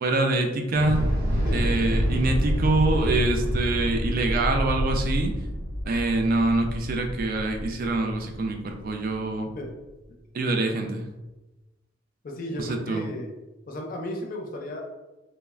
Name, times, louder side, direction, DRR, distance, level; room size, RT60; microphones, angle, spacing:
voice 1, 0.0-1.0 1.5-5.3 5.9-9.5 10.3-11.0 12.6-13.0, right 2 dB, 45° right, 4 dB, 0.3 m, -25 dB
Thunder / Explosion, 0.7-8.9, equal, 85° right, 0.6 m, -27 dB
voice 2, 12.2-13.3 13.7-14.9, left 1 dB, 45° left, 1 dB, 0.4 m, -34 dB
3.0 x 2.0 x 2.3 m, 1.1 s
head